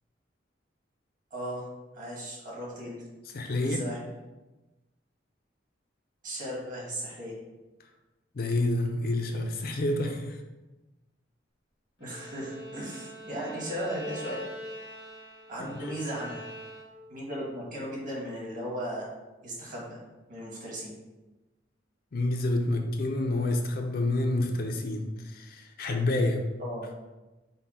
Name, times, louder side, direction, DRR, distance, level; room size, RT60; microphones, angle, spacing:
voice 1, 1.3-1.7 1.9-3.0 3.6-4.0 6.2-7.3 12.0-14.4 15.5-16.4 17.1-19.1 19.4-20.0 20.3-20.9 26.6-26.9, equal, 45° right, -4 dB, 1.5 m, -36 dB
voice 2, 3.3-3.8 8.3-10.4 15.6-16.0 22.1-26.4, left 2 dB, 55° left, 4 dB, 0.5 m, -28 dB
Bowed string instrument, 12.0-17.2, equal, 90° left, 1.1 m, -44 dB
5.4 x 2.2 x 4.3 m, 1.1 s
head